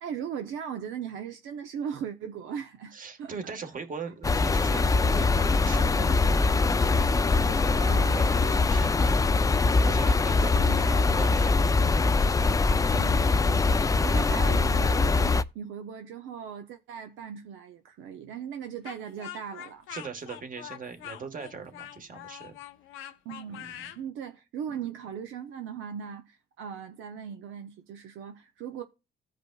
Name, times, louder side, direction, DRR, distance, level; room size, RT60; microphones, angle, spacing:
voice 1, 0.0-2.9 3.2-3.5 7.9-8.3 10.5-11.2 12.9-19.9 23.2-23.7 24.0-28.8, right 8 dB, 80° right, 0.6 m, -38 dB
voice 2, 2.9-6.6 6.9-9.2 9.8-11.9 19.9-22.6 23.5-23.8, right 5 dB, 45° right, 1.4 m, -41 dB
sound 1, 4.2-15.4, left 3 dB, 15° left, 0.3 m, -23 dB
Speech, 18.8-24.0, left 11 dB, 90° left, 0.7 m, -43 dB
15.0 x 5.1 x 2.3 m
cardioid pair, 90°, 20 cm